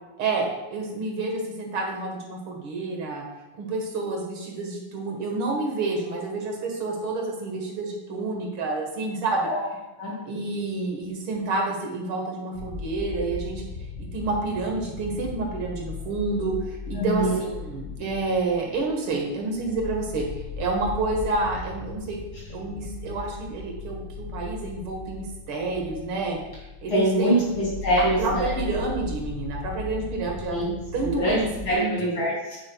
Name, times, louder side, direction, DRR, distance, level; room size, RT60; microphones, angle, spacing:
voice 1, 0.2-3.2 3.6-9.5 10.2-13.7 14.1-20.2 20.6-22.2 22.5-26.4 26.8-27.5 28.0-31.9, right 3 dB, 70° right, 1 dB, 2.2 m, -29 dB
sound 1, 12.5-31.8, left 5 dB, 85° left, 0.4 m, -37 dB
voice 2, 16.9-17.4 26.9-28.5 30.5-30.7 31.0-31.4 31.7-32.6, right 1 dB, 60° left, -7 dB, 3.5 m, -24 dB
8.7 x 8.0 x 2.3 m, 1.0 s
omnidirectional pair, 2.4 m